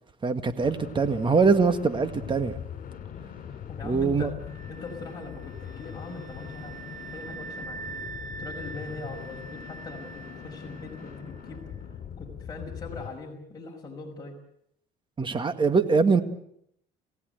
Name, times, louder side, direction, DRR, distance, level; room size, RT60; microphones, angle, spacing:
voice 1, 0.2-2.5 3.8-4.3 15.2-16.2, right 4 dB, 30° right, 1.9 m, -23 dB
sound 1, 0.6-13.1, left 8 dB, 55° left, 3.9 m, -41 dB
voice 2, 3.7-4.3 4.7-6.8 7.1-7.8 8.4-11.6 12.2-14.4, left 3 dB, 25° left, 5.7 m, -41 dB
sound 2, 4.5-11.3, right 4 dB, 50° right, 1.8 m, -43 dB
28.5 x 16.5 x 8.0 m
cardioid pair, 110°, 17 cm